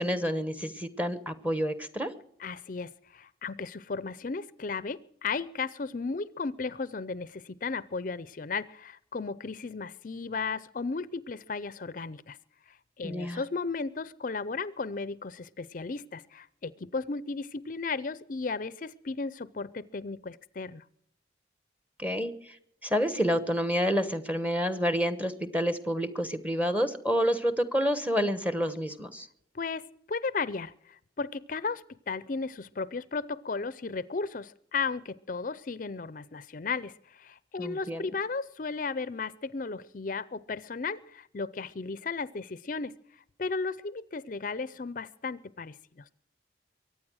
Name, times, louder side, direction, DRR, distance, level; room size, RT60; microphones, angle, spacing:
voice 1, 0.0-2.1 13.0-13.4 22.0-22.6 22.8-29.3 37.6-38.0, equal, 10° right, 11 dB, 1.0 m, -29 dB
voice 2, 2.4-12.4 13.0-20.8 29.5-42.9 43.4-46.0, left 4 dB, 45° left, 18 dB, 0.5 m, -35 dB
23.5 x 9.3 x 6.3 m, 0.71 s
head